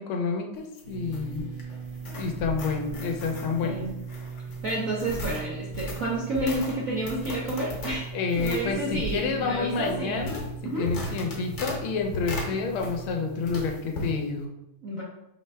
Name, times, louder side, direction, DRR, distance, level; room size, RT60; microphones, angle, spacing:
voice 1, 0.0-1.5 2.1-3.8 8.1-14.5, left 4 dB, 75° left, 3 dB, 1.5 m, -29 dB
sound 1, 0.6-13.2 13.5-14.1, left 1 dB, 55° left, 1.3 m, -37 dB
sound 2, 0.8-13.7, right 5 dB, 35° right, 1.0 m, -40 dB
voice 2, 4.6-8.1 8.3-10.3 10.6-10.9 14.8-15.0, right 1 dB, 60° right, -5 dB, 0.9 m, -30 dB
5.2 x 3.2 x 3.2 m, 0.87 s
omnidirectional pair, 2.4 m